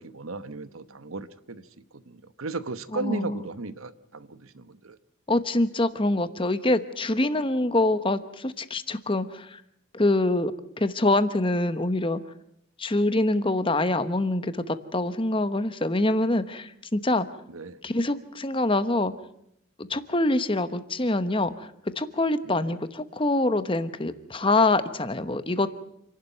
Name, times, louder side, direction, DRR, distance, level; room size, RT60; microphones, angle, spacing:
voice 1, 0.0-1.7 1.9-5.0 17.5-17.8 22.4-22.8, right 3 dB, 80° right, 13 dB, 1.1 m, -36 dB
voice 2, 2.9-3.4 5.3-9.6 9.9-10.5 10.8-12.2 12.8-17.3 17.8-19.1 19.8-21.7 22.0-25.7, left 2 dB, 25° left, 12 dB, 1.0 m, -25 dB
28.5 x 11.5 x 9.2 m, 0.75 s
head